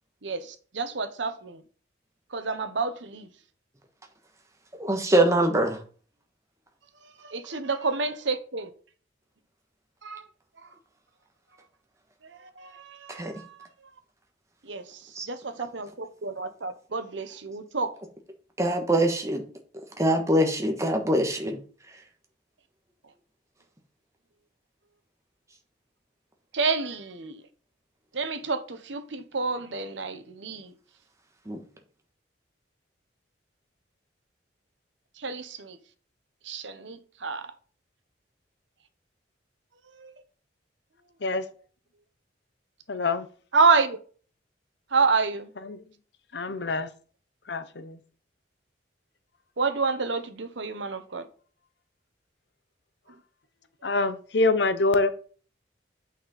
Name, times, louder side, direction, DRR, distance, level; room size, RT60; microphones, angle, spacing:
voice 1, 0.2-1.6 2.3-3.3 7.2-8.7 10.0-10.2 12.6-13.6 14.7-14.8 15.3-17.9 26.5-27.4 28.1-30.7 35.2-35.8 36.5-37.5 40.0-40.1 43.5-44.0 44.9-45.5 49.6-51.3, right 4 dB, 80° right, 1.1 m, -28 dB
voice 2, 4.8-5.8 13.1-13.3 15.1-15.3 18.6-19.4 20.0-21.6 31.5-31.6, right 1 dB, 15° right, 1.4 m, -23 dB
voice 3, 42.9-43.3 45.6-45.8 46.3-46.9 47.5-48.0 53.8-55.1, left 3 dB, 65° left, 0.8 m, -25 dB
8.5 x 5.9 x 4.2 m
head